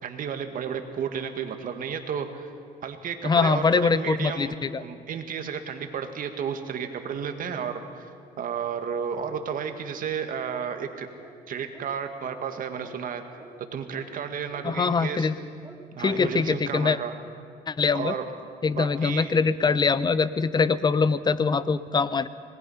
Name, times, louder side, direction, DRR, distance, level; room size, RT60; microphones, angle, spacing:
voice 1, 0.0-2.5 2.8-4.5 4.8-8.1 8.4-11.1 11.5-13.2 13.7-15.3 15.9-17.2 17.9-18.3 18.7-19.4, right 7 dB, 55° right, 6 dB, 2.0 m, -32 dB
voice 2, 3.2-4.8 14.6-15.3 16.0-17.0 17.7-18.1 18.6-22.3, left 5 dB, 25° left, 15 dB, 0.7 m, -23 dB
sound 1, 10.7-10.9 11.2-11.4 11.7-11.9 12.2-12.4 12.8-13.0 13.4-13.5 13.9-14.1 14.5-14.7 15.1-15.2 15.6-15.8, right 3 dB, 10° right, 1.9 m, -48 dB
25.5 x 20.0 x 5.7 m, 2.3 s
cardioid pair, 110°, 17 cm